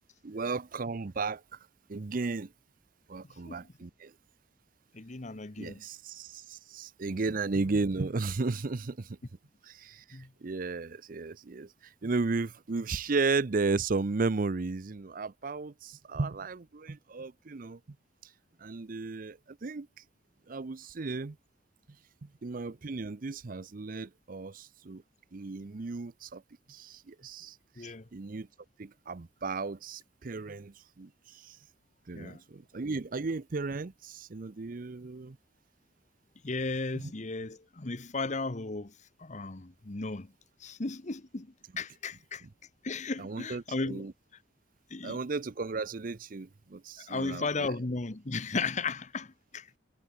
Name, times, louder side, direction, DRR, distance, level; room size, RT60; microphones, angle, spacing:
voice 1, 0.2-1.4 1.9-2.5 3.1-4.1 5.6-9.2 9.6-17.8 18.6-19.9 20.5-21.4 22.2-25.0 25.3-26.4 26.7-28.5 28.8-31.6 32.1-35.4 43.2-44.1 45.0-47.7, right 3 dB, 50° right, 0.6 m, -34 dB
voice 2, 4.9-5.8 7.1-7.2 10.1-10.3 27.8-28.1 32.1-32.4 36.4-38.9 39.2-40.3 40.6-42.5 42.8-44.0 44.9-45.2 47.1-49.7, left 3 dB, 40° left, 1.1 m, -35 dB
head